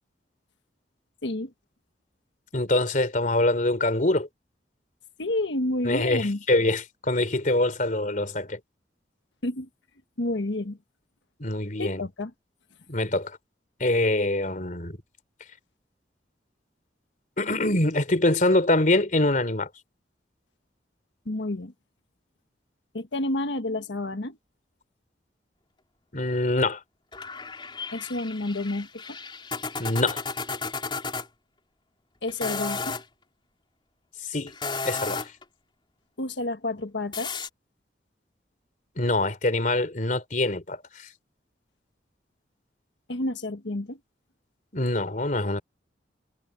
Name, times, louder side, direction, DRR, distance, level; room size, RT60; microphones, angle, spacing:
voice 1, 2.5-4.3 5.9-8.6 11.4-12.0 12.9-13.3 13.8-15.0 17.4-19.7 26.1-26.8 29.8-30.2 34.2-34.5 34.8-35.3 39.0-41.1 44.7-45.6, left 2 dB, 45° left, 3.5 m, -24 dB
voice 2, 5.2-6.4 9.4-9.7 10.2-10.8 11.8-12.3 21.2-21.7 22.9-24.4 27.9-29.2 32.2-33.0 36.2-37.3 43.1-44.0, left 2 dB, 90° left, 1.3 m, -30 dB
sound 1, 27.1-31.3 32.3-33.0 34.5-35.4 37.1-37.5, left 4 dB, 30° left, 3.8 m, -33 dB
head